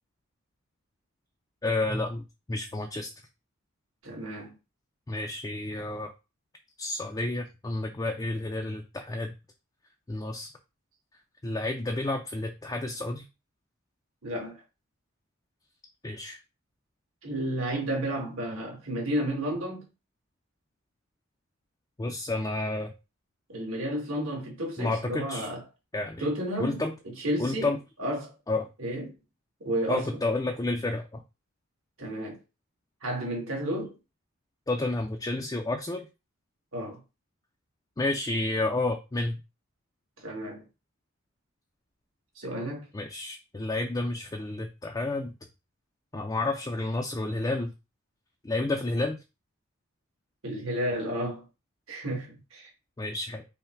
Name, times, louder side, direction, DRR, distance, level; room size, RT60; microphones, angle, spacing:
voice 1, 1.6-3.1 5.1-6.1 6.8-9.3 10.1-10.5 11.4-13.2 16.0-16.4 22.0-22.9 24.8-25.5 25.9-26.3 26.6-26.9 27.4-27.8 28.5-28.7 29.9-31.2 34.7-36.1 38.0-39.4 42.9-45.3 46.1-47.7 48.4-49.2 53.0-53.4, left 2 dB, 15° left, 0.4 m, -30 dB
voice 2, 4.0-4.6 14.2-14.6 17.2-19.8 23.5-25.6 26.2-26.8 27.2-28.3 28.8-29.1 29.6-30.1 32.0-32.4 33.0-34.0 36.7-37.0 40.2-40.6 42.4-42.9 50.4-51.4 51.9-52.7, equal, 75° right, 1.9 m, -32 dB
5.5 x 2.2 x 4.4 m
head